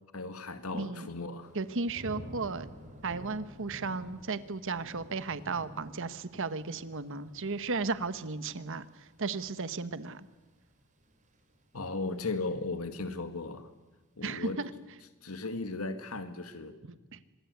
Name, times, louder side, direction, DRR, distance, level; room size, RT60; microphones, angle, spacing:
voice 1, 0.1-1.5 11.7-13.7 14.2-14.6 15.2-16.8, left 3 dB, 85° left, 9 dB, 1.8 m, -36 dB
voice 2, 0.7-1.1 1.5-2.7 3.0-10.3 14.2-14.7 16.9-17.2, right 4 dB, 65° right, 13 dB, 1.2 m, -35 dB
Thunder / Rain, 1.4-12.4 12.8-13.2, equal, 35° right, 4.5 m, -51 dB
26.0 x 21.5 x 8.1 m, 1.2 s
head